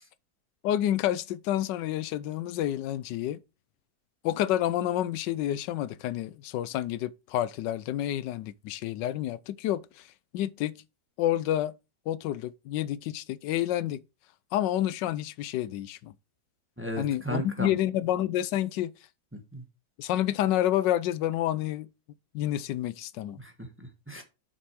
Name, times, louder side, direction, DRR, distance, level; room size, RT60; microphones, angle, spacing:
voice 1, 0.6-3.4 4.2-10.1 10.3-10.8 11.2-11.7 12.1-14.0 14.5-16.1 17.0-18.9 20.0-21.9 22.3-23.4, left 12 dB, 90° left, 1.3 m, -29 dB
voice 2, 16.8-17.8 19.3-19.6 23.4-24.2, right 1 dB, 10° right, 1.2 m, -36 dB
7.1 x 6.2 x 4.6 m
omnidirectional pair, 1.9 m